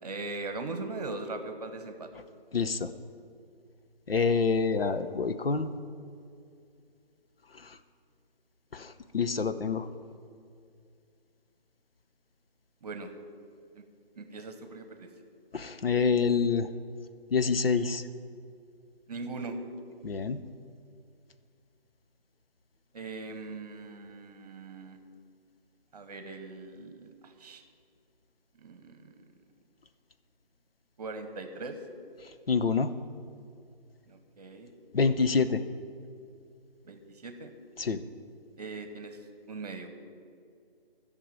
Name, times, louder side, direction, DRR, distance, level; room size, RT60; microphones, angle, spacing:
voice 1, 0.0-2.1 12.8-13.1 13.7-13.8 14.1-15.1 19.1-19.6 22.9-25.0 25.9-27.6 28.6-29.1 31.0-31.8 34.1-34.7 35.4-35.5 36.8-37.5 38.6-39.2 39.5-39.9, right 3 dB, 40° right, 8 dB, 1.1 m, -40 dB
voice 2, 2.5-2.9 4.1-5.7 8.7-9.9 15.5-16.7 17.3-18.0 20.0-20.4 32.5-32.9 34.9-35.6 37.8-38.0, left 5 dB, 70° left, 10 dB, 0.8 m, -26 dB
11.5 x 6.8 x 9.0 m, 2.3 s
figure-of-eight pair, 155°, 30 cm